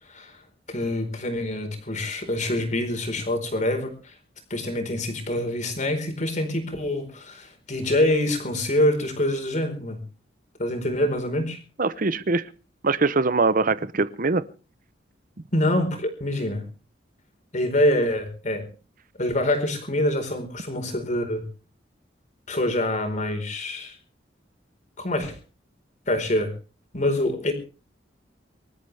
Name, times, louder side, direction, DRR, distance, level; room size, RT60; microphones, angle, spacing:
voice 1, 0.7-4.2 4.5-10.0 10.6-11.6 15.5-16.6 17.5-18.7 19.2-21.4 22.5-24.0 25.0-25.4 26.1-26.5 26.9-27.5, left 1 dB, 45° left, 5 dB, 4.7 m, -25 dB
voice 2, 11.8-12.5 12.8-14.4, right 3 dB, 50° right, 15 dB, 0.8 m, -22 dB
25.5 x 13.5 x 3.5 m, 0.36 s
head